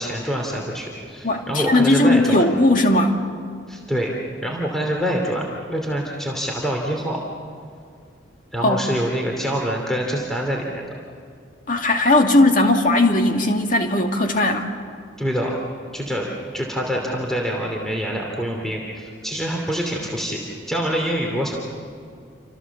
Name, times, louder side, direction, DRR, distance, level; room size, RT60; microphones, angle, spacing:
voice 1, 0.0-2.4 3.7-4.1 4.4-5.4 5.7-7.2 8.5-10.8 15.2-15.6 15.9-16.3 16.5-20.4 20.7-21.6, equal, ahead, -1 dB, 2.8 m, -25 dB
voice 2, 1.2-3.2 8.6-8.8 11.7-14.7, left 1 dB, 45° left, 3 dB, 2.3 m, -18 dB
29.0 x 26.0 x 7.2 m, 2.2 s
head